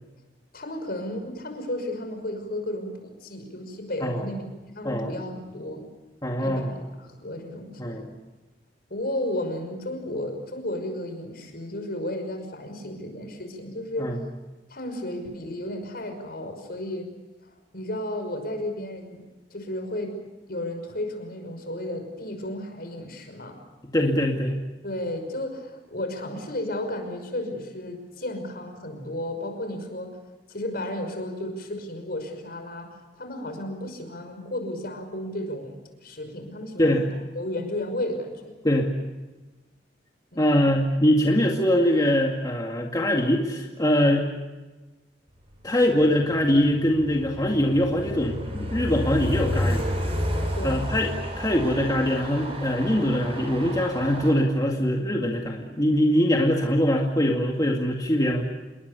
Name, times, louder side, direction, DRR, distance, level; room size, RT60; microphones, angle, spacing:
voice 1, 0.5-5.9 6.4-6.7 7.0-8.1 8.9-14.2 14.7-17.1 17.4-19.2 19.5-20.2 20.5-23.6 24.8-30.2 30.5-37.0 37.3-38.5 40.3-40.7 50.5-50.9, left 1 dB, 60° left, 6 dB, 5.8 m, -33 dB
voice 2, 6.2-6.7 7.8-8.1 14.0-14.2 23.9-24.5 36.8-37.0 38.6-38.9 40.4-44.3 45.6-49.9 50.6-58.4, equal, 20° left, 0 dB, 2.2 m, -23 dB
Train, 46.0-54.3, equal, 35° right, 7.2 m, -31 dB
28.0 x 22.0 x 6.9 m, 1.2 s
head